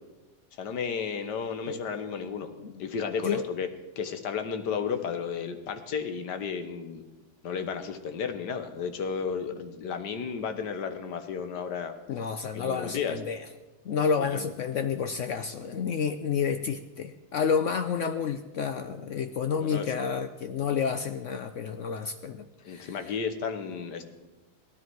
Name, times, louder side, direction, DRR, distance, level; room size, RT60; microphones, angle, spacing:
voice 1, 0.6-2.5 2.8-3.7 4.0-7.0 7.4-11.9 12.5-13.2 14.2-14.5 19.6-19.9 22.6-24.1, left 6 dB, 85° left, 8 dB, 1.7 m, -33 dB
voice 2, 12.1-13.5 13.8-23.0, left 6 dB, 65° left, 9 dB, 0.7 m, -30 dB
17.0 x 13.0 x 4.6 m, 1.1 s
omnidirectional pair, 1.8 m